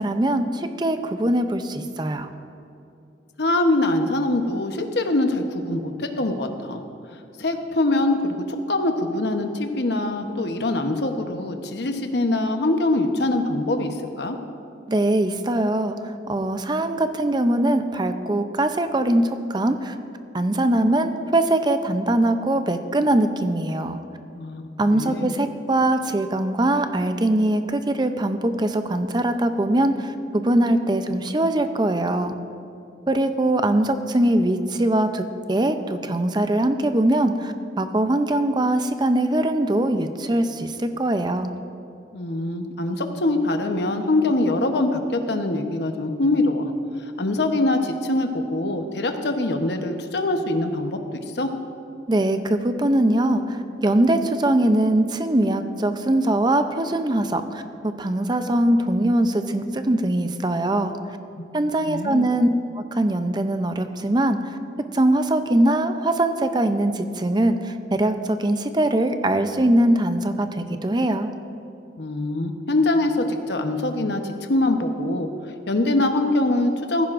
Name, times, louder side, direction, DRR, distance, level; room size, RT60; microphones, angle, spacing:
voice 1, 0.0-2.3 14.9-20.0 20.3-24.0 24.8-32.4 33.1-41.5 52.1-61.0 61.5-62.5 62.8-64.6 64.9-71.3, right 1 dB, 25° right, 8 dB, 0.5 m, -22 dB
voice 2, 3.4-6.8 7.4-14.4 24.4-25.3 42.1-46.7 47.0-51.5 61.4-62.3 72.0-75.3 75.7-77.1, left 2 dB, 65° left, 5 dB, 0.9 m, -23 dB
15.5 x 15.0 x 2.5 m, 2.7 s
head